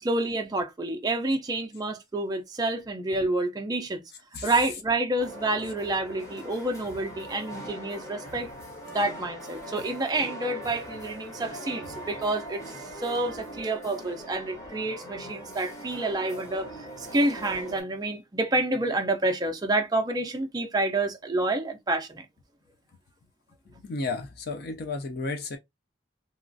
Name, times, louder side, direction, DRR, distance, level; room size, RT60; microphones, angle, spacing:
voice 1, 0.0-4.0 4.4-8.5 8.9-12.6 13.0-16.7 17.0-22.3, right 2 dB, 20° right, 0.4 m, -28 dB
sound 1, 5.2-17.8, right 1 dB, 15° left, 0.7 m, -41 dB
voice 2, 23.8-25.6, left 3 dB, 50° left, 0.4 m, -32 dB
2.9 x 2.3 x 2.5 m
head